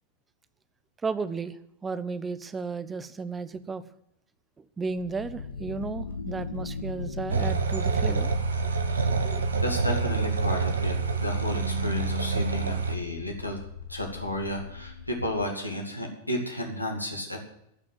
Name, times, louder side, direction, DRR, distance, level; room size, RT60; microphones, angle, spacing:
voice 1, 1.0-1.5 1.8-3.8 4.8-8.3 9.2-9.5, right 4 dB, 15° right, 14 dB, 0.9 m, -33 dB
sound 1, 4.8-15.5, left 4 dB, 70° left, 1.2 m, -38 dB
sound 2, 7.3-12.9, right 5 dB, 70° right, 1.4 m, -27 dB
voice 2, 9.6-13.6 13.9-17.4, left 1 dB, 85° left, 1 dB, 2.4 m, -32 dB
14.5 x 6.3 x 9.3 m, 0.78 s
figure-of-eight pair, 90°, 0 cm